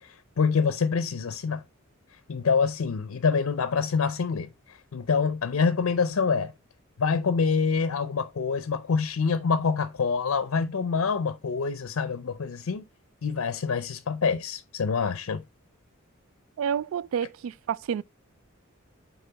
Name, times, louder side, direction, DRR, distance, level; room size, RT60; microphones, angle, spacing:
voice 1, 0.0-1.6 2.3-6.5 7.0-12.8 13.2-15.4, left 5 dB, 85° left, 0.5 m, -26 dB
voice 2, 16.6-18.0, right 8 dB, 70° right, 0.3 m, -29 dB
6.9 x 4.1 x 3.3 m
head